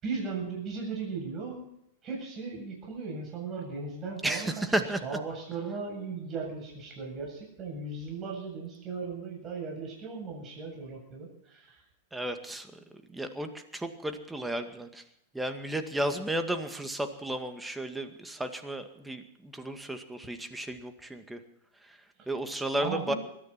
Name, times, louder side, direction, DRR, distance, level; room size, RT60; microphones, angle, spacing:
voice 1, 0.0-1.6 2.0-4.5 5.0-11.8 22.2-22.3 22.8-23.2, right 4 dB, 30° right, -1 dB, 7.9 m, -37 dB
voice 2, 4.2-5.0 12.1-15.0 15.3-21.4 21.8-22.0 22.3-23.1, right 1 dB, 5° right, 7 dB, 2.1 m, -33 dB
21.5 x 13.5 x 4.4 m, 0.75 s
hypercardioid pair, 100°, 0 cm